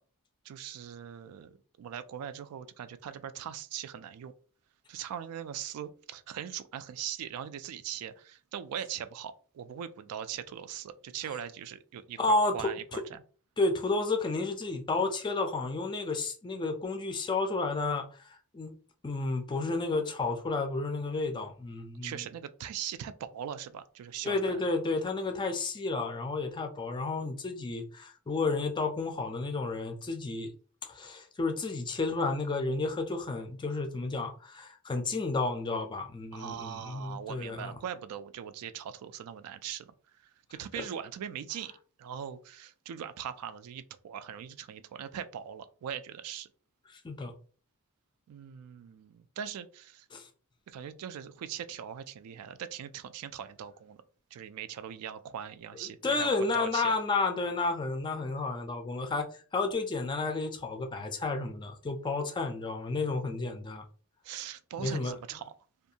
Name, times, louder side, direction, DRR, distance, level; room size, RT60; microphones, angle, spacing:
voice 1, 0.4-4.3 4.9-13.2 22.0-24.7 36.3-39.9 40.2-41.7 42.0-46.5 48.3-50.1 50.7-54.0 54.3-56.9 64.2-65.5, right 9 dB, 80° right, 0.3 m, -40 dB
voice 2, 12.2-13.0 13.6-18.7 19.0-22.2 24.2-30.5 30.8-37.8 40.8-40.9 46.9-47.3 50.1-50.3 56.0-63.8 64.8-65.4, left 3 dB, 20° left, 0.4 m, -31 dB
2.5 x 2.3 x 2.7 m
head